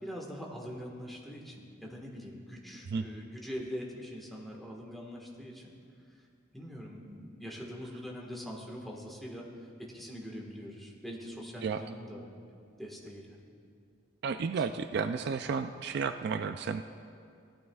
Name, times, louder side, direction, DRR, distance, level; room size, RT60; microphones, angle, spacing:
voice 1, 0.0-5.7 6.5-9.5 9.8-12.2 12.8-13.4, equal, ahead, -2 dB, 1.4 m, -43 dB
voice 2, 14.2-16.8, right 5 dB, 55° right, 8 dB, 0.3 m, -32 dB
17.0 x 12.5 x 2.3 m, 2.4 s
head